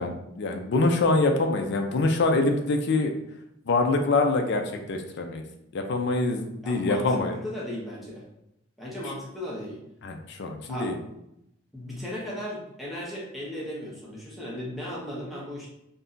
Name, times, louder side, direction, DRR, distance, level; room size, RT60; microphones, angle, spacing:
voice 1, 0.0-3.1 3.7-4.6 4.9-5.4 5.7-7.3 10.0-11.0, left 3 dB, 60° left, 4 dB, 0.4 m, -25 dB
voice 2, 6.6-7.2 7.4-8.2 8.8-9.8 10.7-10.9 11.7-15.7, left 1 dB, ahead, -6 dB, 0.6 m, -36 dB
2.6 x 2.1 x 3.7 m, 0.82 s
head